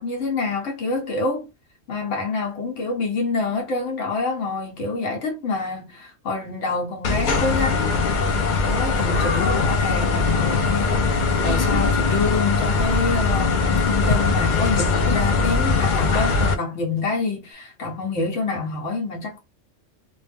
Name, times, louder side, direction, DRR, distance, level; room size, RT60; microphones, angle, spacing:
voice 1, 0.0-1.5 1.9-8.1 8.7-19.4, left 3 dB, 85° left, 1.2 m, -27 dB
sound 1, 7.0-16.6, left 4 dB, 60° left, 0.5 m, -21 dB
2.5 x 2.1 x 3.3 m
omnidirectional pair, 1.2 m